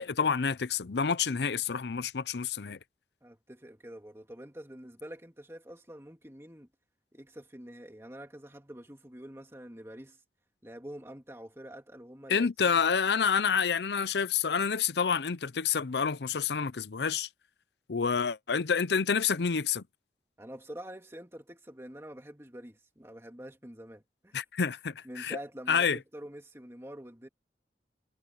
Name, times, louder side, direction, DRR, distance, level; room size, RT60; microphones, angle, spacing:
voice 1, 0.0-2.8 12.3-17.3 17.9-19.8 24.3-25.4 25.7-26.0, left 6 dB, 75° left, 0.6 m, -28 dB
voice 2, 3.2-6.7 7.1-10.2 10.6-12.8 20.4-24.3 25.0-27.3, right 1 dB, 15° right, 2.5 m, -46 dB
head